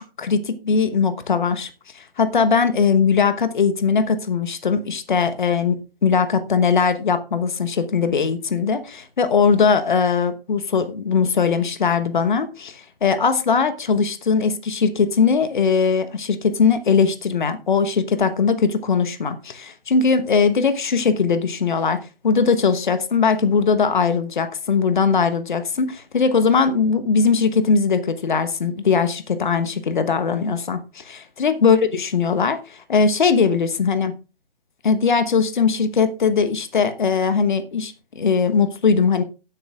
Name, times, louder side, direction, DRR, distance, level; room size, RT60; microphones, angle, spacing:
voice 1, 0.0-1.7 1.9-34.1 34.8-39.2, left 5 dB, 55° left, 11 dB, 1.1 m, -20 dB
16.0 x 8.0 x 2.4 m, 0.32 s
figure-of-eight pair, 135°, 30 cm